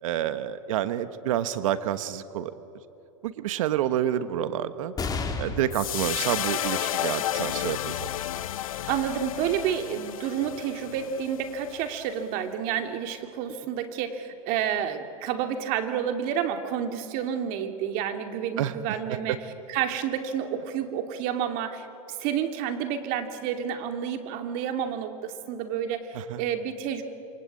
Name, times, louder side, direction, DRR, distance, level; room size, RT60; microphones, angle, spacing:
voice 1, 0.0-2.5 3.2-4.9 5.4-8.1 18.6-19.4 26.1-26.4, right 11 dB, 75° right, 12 dB, 1.3 m, -29 dB
sound 1, 5.0-11.9 12.5-12.6 13.7-14.2, left 3 dB, 20° left, 3.1 m, -39 dB
sound 2, 5.7-12.1, left 12 dB, 85° left, 0.7 m, -32 dB
voice 2, 8.9-19.4 19.7-21.9 22.2-27.0, right 8 dB, 55° right, 6 dB, 2.7 m, -30 dB
27.5 x 24.5 x 8.5 m, 2.9 s
hypercardioid pair, 115°, 17 cm